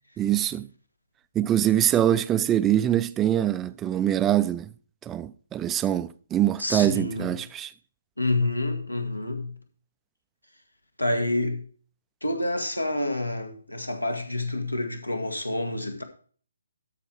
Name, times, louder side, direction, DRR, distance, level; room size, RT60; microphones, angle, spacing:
voice 1, 0.2-0.7 1.4-4.7 5.0-7.7, right 11 dB, 15° right, 0.3 m, -24 dB
voice 2, 6.6-7.3 8.2-9.5 11.0-11.6 12.2-16.0, left 2 dB, 85° left, 1.8 m, -28 dB
13.0 x 4.6 x 4.5 m
figure-of-eight pair, 140°, 0 cm